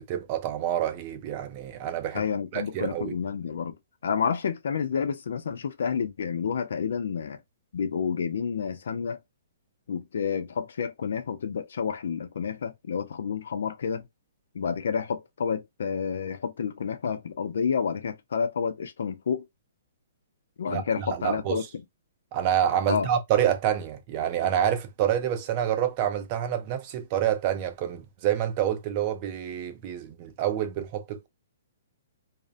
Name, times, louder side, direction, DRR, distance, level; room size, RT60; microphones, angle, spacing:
voice 1, 0.1-2.2 2.5-3.1 20.7-21.6 22.3-31.3, right 10 dB, 30° right, 0.5 m, -27 dB
voice 2, 2.1-3.8 4.0-7.4 7.7-9.2 9.9-14.0 14.5-19.5 20.6-21.6 22.9-23.1, left 6 dB, 70° left, 0.4 m, -29 dB
2.5 x 2.1 x 2.4 m
hypercardioid pair, 160°, 0 cm